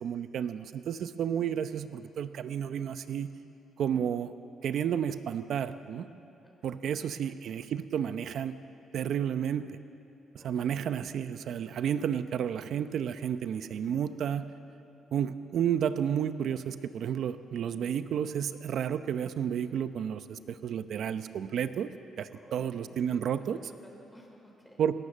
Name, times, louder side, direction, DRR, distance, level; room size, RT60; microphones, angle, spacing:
voice 1, 0.0-3.3 3.8-4.3 4.6-6.1 6.6-8.5 8.9-9.8 10.4-14.5 15.1-21.9 22.2-23.6 24.8-24.9, right 8 dB, 70° right, 11 dB, 0.8 m, -31 dB
voice 2, 6.4-7.1 10.3-10.7 22.3-23.2 23.5-24.8, equal, 5° left, -1 dB, 4.2 m, -56 dB
20.0 x 17.0 x 7.5 m, 2.8 s
cardioid pair, 90°, 0 cm